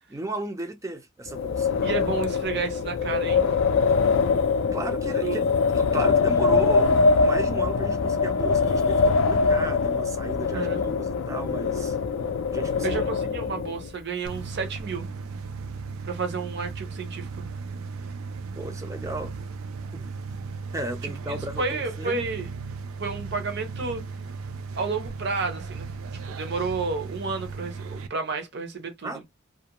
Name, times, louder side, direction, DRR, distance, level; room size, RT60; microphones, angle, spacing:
voice 1, 0.1-1.7 4.7-12.0 12.5-13.0 18.5-19.3 19.9-20.1 20.7-22.2 29.0-29.2, right 2 dB, 15° right, 0.4 m, -35 dB
Wind, 1.3-13.9, left 4 dB, 65° left, 0.4 m, -23 dB
voice 2, 1.8-3.5 5.2-5.4 10.5-10.8 12.8-15.1 16.0-17.5 21.3-22.5 23.0-24.0 24.8-25.9 26.2-29.2, right 4 dB, 55° right, 0.7 m, -31 dB
sound 1, 14.3-28.1, right 4 dB, 85° right, 0.4 m, -36 dB
2.4 x 2.1 x 2.8 m
head